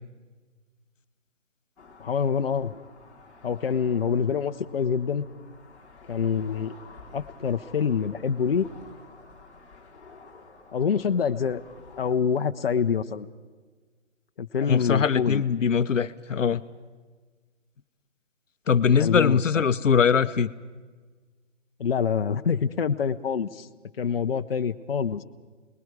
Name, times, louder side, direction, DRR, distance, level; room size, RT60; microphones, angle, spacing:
sound 1, 1.8-12.2, left 4 dB, 5° left, 1.1 m, -50 dB
voice 1, 2.0-2.8 3.4-5.2 6.1-6.8 7.1-8.7 10.7-11.6 12.0-13.3 14.4-15.4 19.0-19.6 21.8-23.7 24.0-25.2, left 6 dB, 50° left, 8 dB, 0.7 m, -26 dB
voice 2, 14.7-16.6 18.7-20.5, left 6 dB, 85° left, 13 dB, 0.8 m, -22 dB
29.0 x 20.5 x 4.8 m, 1.4 s
hypercardioid pair, 160°, 37 cm